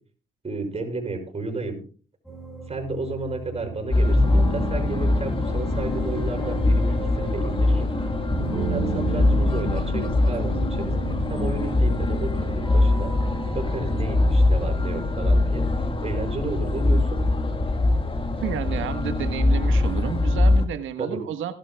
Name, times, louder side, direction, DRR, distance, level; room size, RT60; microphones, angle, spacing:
voice 1, 0.4-1.8 2.7-7.9 8.7-10.9 11.3-13.1 13.5-17.2 21.0-21.2, right 3 dB, 30° right, 3 dB, 6.3 m, -32 dB
sound 1, 2.3-18.1, right 3 dB, ahead, 5.6 m, -35 dB
sound 2, 3.9-20.7, left 2 dB, 25° left, 1.7 m, -22 dB
voice 2, 18.4-21.5, right 9 dB, 80° right, 9 dB, 1.5 m, -31 dB
18.5 x 12.0 x 2.3 m, 0.37 s
cardioid pair, 90°, 20 cm